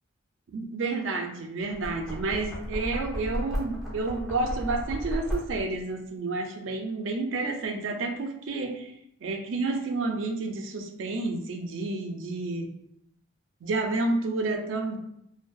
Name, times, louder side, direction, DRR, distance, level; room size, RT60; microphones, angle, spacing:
voice 1, 0.5-8.9 9.2-12.7 13.6-15.0, right 3 dB, 85° right, 4 dB, 0.4 m, -30 dB
Knock, 1.7-5.8, equal, ahead, 0.5 m, -34 dB
2.5 x 2.2 x 2.3 m, 0.75 s
head